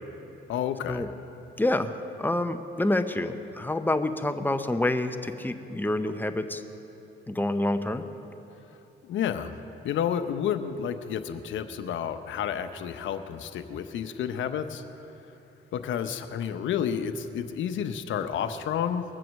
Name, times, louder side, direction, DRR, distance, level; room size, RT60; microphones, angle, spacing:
voice 1, 0.5-1.1 9.0-9.5 9.8-14.8 15.7-19.0, left 8 dB, 75° left, 9 dB, 0.8 m, -30 dB
voice 2, 1.6-6.6 7.3-8.1, left 1 dB, 10° left, 8 dB, 0.7 m, -27 dB
21.5 x 7.7 x 6.4 m, 3.0 s
cardioid pair, 90°, 20 cm